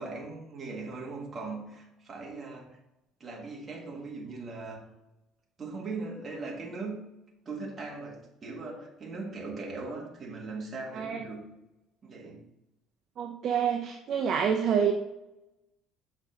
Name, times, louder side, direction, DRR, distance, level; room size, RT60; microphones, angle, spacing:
voice 1, 0.0-2.8 3.2-4.8 5.6-7.0 7.4-11.4 12.0-12.4, right 3 dB, 25° right, -1 dB, 1.4 m, -39 dB
voice 2, 13.2-14.9, right 7 dB, 40° right, 2 dB, 0.5 m, -27 dB
6.5 x 5.1 x 3.7 m, 0.93 s
cardioid pair, 160°, 0 cm